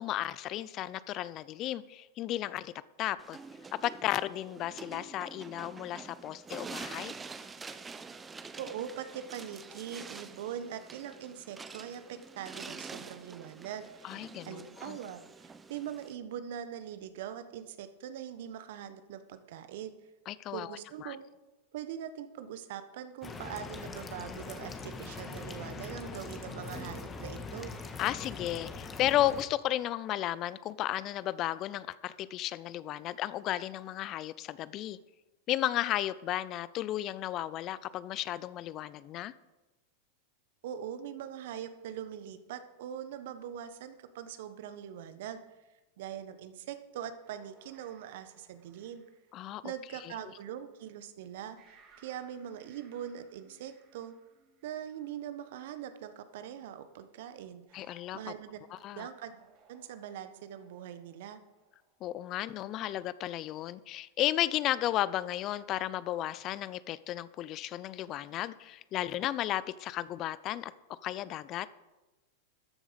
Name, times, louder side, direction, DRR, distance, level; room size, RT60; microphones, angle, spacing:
voice 1, 0.0-2.7 3.0-3.4 3.8-7.1 14.0-15.0 20.3-21.2 28.0-35.0 35.5-39.3 49.3-49.6 50.0-50.1 57.7-58.2 58.7-59.1 62.0-70.7 71.0-71.7, left 13 dB, 40° left, 17 dB, 0.6 m, -34 dB
sound 1, 3.2-16.2, right 4 dB, 20° right, 1.0 m, -47 dB
voice 2, 8.6-19.9 20.5-21.3 21.7-27.7 40.6-45.4 46.0-49.0 49.6-54.1 54.6-58.6 59.0-59.4 59.7-61.4, right 9 dB, 65° right, 11 dB, 1.2 m, -42 dB
sound 2, 23.2-29.4, left 4 dB, 20° left, 1.5 m, -42 dB
sound 3, 47.2-50.9 51.6-56.0 57.7-62.0, right 5 dB, 45° right, 3.3 m, -64 dB
13.5 x 10.0 x 5.2 m, 1.1 s
hypercardioid pair, 100°, 0 cm